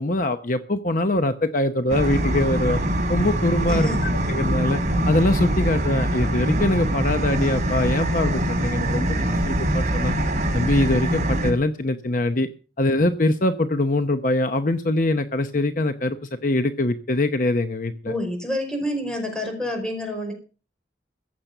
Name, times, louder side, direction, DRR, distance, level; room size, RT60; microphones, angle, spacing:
voice 1, 0.0-2.8 3.1-4.8 5.1-10.2 10.5-12.5 12.8-16.2 16.4-18.1, left 2 dB, 50° left, 9 dB, 0.8 m, -23 dB
sound 1, 1.9-11.5, right 1 dB, 45° right, 3.1 m, -23 dB
voice 2, 3.7-4.1 18.1-20.3, left 1 dB, 5° left, 3 dB, 5.2 m, -28 dB
15.0 x 8.6 x 6.6 m, 0.37 s
head